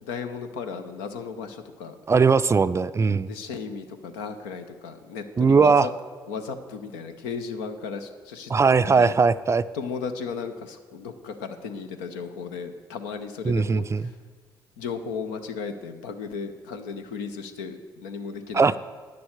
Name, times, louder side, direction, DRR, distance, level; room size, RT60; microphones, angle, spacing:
voice 1, 0.0-2.0 3.3-5.9 6.3-8.5 8.8-9.1 9.7-14.2 14.8-18.8, left 5 dB, 75° left, 8 dB, 0.7 m, -35 dB
voice 2, 2.1-3.3 5.4-5.9 8.5-9.6 13.5-14.0 18.5-18.8, right 5 dB, 25° right, 14 dB, 0.4 m, -19 dB
9.5 x 7.0 x 6.5 m, 1.5 s
hypercardioid pair, 50°, 11 cm